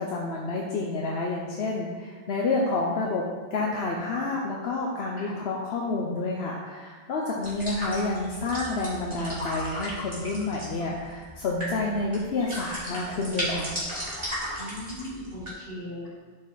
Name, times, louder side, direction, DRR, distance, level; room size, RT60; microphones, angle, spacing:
voice 1, 0.0-3.2 3.5-13.7, left 3 dB, 85° left, -2 dB, 1.1 m, -29 dB
sound 1, 7.4-15.5, equal, 30° right, 2.9 m, -35 dB
voice 2, 14.6-16.1, left 1 dB, 60° left, -6 dB, 2.6 m, -38 dB
10.5 x 4.6 x 4.1 m, 1.4 s
omnidirectional pair, 1.0 m